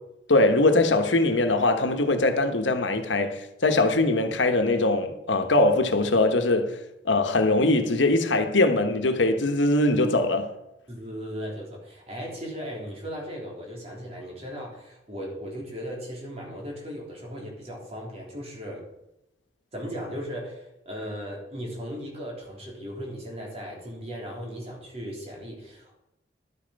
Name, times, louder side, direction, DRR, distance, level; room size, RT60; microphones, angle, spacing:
voice 1, 0.3-6.8 7.0-10.5, left 2 dB, 90° left, 1.2 m, -22 dB
voice 2, 10.9-18.9 19.7-25.9, equal, 35° right, 3.7 m, -37 dB
12.0 x 8.9 x 5.3 m
head